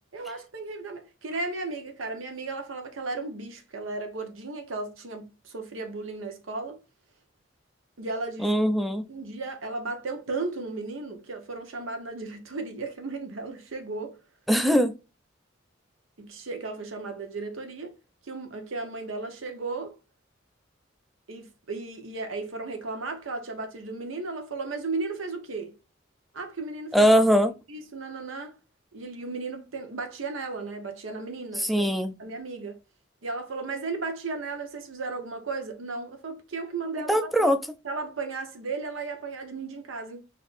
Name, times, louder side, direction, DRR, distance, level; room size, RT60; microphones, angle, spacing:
voice 1, 0.1-6.8 8.0-8.5 9.1-14.2 16.2-17.9 18.2-19.9 21.3-25.7 26.3-27.1 27.7-28.6 28.9-31.9 32.2-32.8 33.2-37.5 37.8-40.2, right 3 dB, 90° right, 0.9 m, -35 dB
voice 2, 8.4-9.0 14.5-15.0 26.9-27.5 31.6-32.1 37.1-37.6, equal, ahead, 0.3 m, -21 dB
4.3 x 2.6 x 2.4 m
head